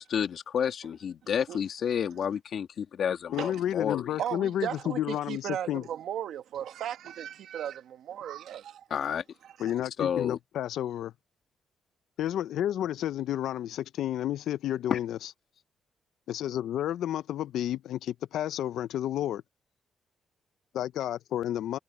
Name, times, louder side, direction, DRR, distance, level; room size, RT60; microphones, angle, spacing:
voice 1, 0.0-4.1 8.9-9.2 10.0-10.4 14.9-15.0, left 8 dB, 60° left, 1.9 m, -30 dB
voice 2, 1.2-1.6 3.4-3.6 4.2-9.1 9.4-9.7, right 10 dB, 80° right, 1.5 m, -36 dB
voice 3, 3.3-5.9 9.6-11.1 12.2-15.3 16.3-19.4 20.7-21.8, left 11 dB, 85° left, 0.5 m, -31 dB
cardioid pair, 110°, 0 cm